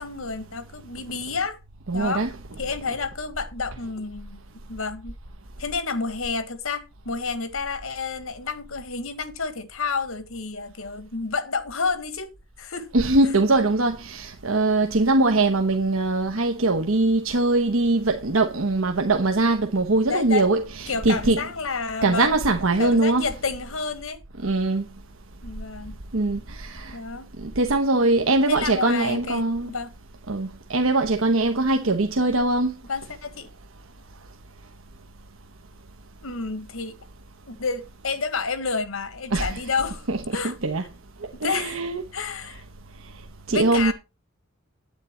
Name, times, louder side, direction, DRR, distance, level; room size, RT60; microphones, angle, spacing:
voice 1, 0.0-1.6 1.9-2.2 2.6-4.4 4.7-5.1 5.6-12.3 12.6-12.9 20.1-20.5 20.9-22.3 22.8-24.2 25.4-26.0 26.9-27.3 28.5-29.9 32.9-33.5 36.2-37.0 37.5-40.5 41.3-41.8 42.1-42.6 43.5-43.9, left 4 dB, 85° left, 1.5 m, -30 dB
voice 2, 1.9-2.3 12.9-21.4 22.0-23.2 24.4-24.9 26.1-27.0 27.4-29.7 30.3-32.7 39.3-39.6 40.1-40.2 40.4-40.8 41.4-42.0 43.5-43.9, right 2 dB, 85° right, 1.1 m, -22 dB
9.5 x 8.9 x 4.4 m
head